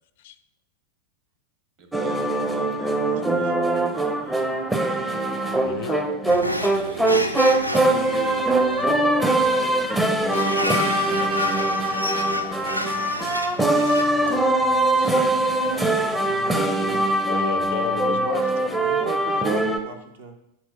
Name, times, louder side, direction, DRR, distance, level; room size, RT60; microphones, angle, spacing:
voice 1, 1.8-4.6 6.7-9.9 10.2-12.5 14.5-14.6, right 5 dB, 40° right, 4 dB, 1.1 m, -40 dB
sound 1, 1.9-19.8, right 1 dB, 5° right, 0.6 m, -22 dB
voice 2, 5.6-6.1 14.0-15.1 17.3-18.7, left 11 dB, 55° left, 12 dB, 0.4 m, -33 dB
sound 2, 6.3-17.1, left 1 dB, 90° right, 0.4 m, -31 dB
voice 3, 16.3-17.0 18.8-20.3, right 3 dB, 60° right, 5 dB, 0.8 m, -35 dB
6.2 x 4.1 x 4.5 m, 0.81 s
figure-of-eight pair, 90°, 0 cm